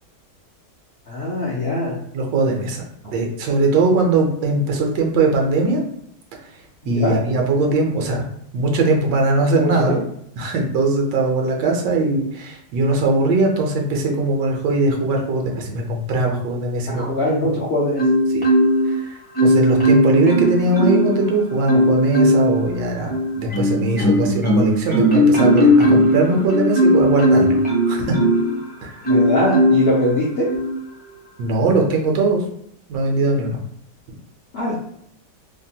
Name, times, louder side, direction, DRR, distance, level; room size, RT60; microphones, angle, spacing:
voice 1, 1.1-2.0 6.8-7.2 9.6-10.0 16.9-18.0 29.1-30.5 34.5-34.8, left 1 dB, 70° left, -6 dB, 0.5 m, -22 dB
voice 2, 2.1-5.8 6.9-8.2 8.5-10.0 10.4-17.0 18.3-18.4 18.9-19.0 19.4-27.6 27.9-28.2 28.8-28.9 31.4-32.4 32.9-33.6, right 2 dB, 85° right, 1 dB, 1.3 m, -20 dB
Marimba xylophone, 18.0-18.9 19.4-21.2 21.7-22.6 23.1-28.5 29.0-29.9 30.5-30.7, equal, 15° left, 0.4 m, -17 dB
3.2 x 2.2 x 2.7 m, 0.71 s
omnidirectional pair, 1.9 m